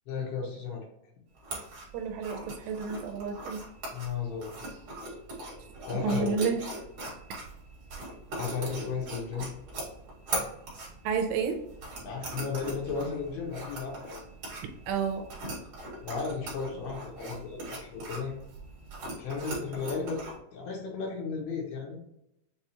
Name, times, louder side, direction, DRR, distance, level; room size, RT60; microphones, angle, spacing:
voice 1, 0.1-0.8 3.9-4.5 5.9-6.3 8.3-9.5 10.3-10.5 12.0-14.2 16.0-18.3 19.2-20.2 20.5-22.0, left 5 dB, 75° left, -1 dB, 2.6 m, -34 dB
sound 1, 1.3-20.4, right 2 dB, 55° right, 1.7 m, -40 dB
voice 2, 1.9-3.6 5.9-6.6 11.0-11.6 14.9-15.3, right 6 dB, 85° right, 4 dB, 2.6 m, -30 dB
6.7 x 2.3 x 2.8 m, 0.82 s
omnidirectional pair, 5.0 m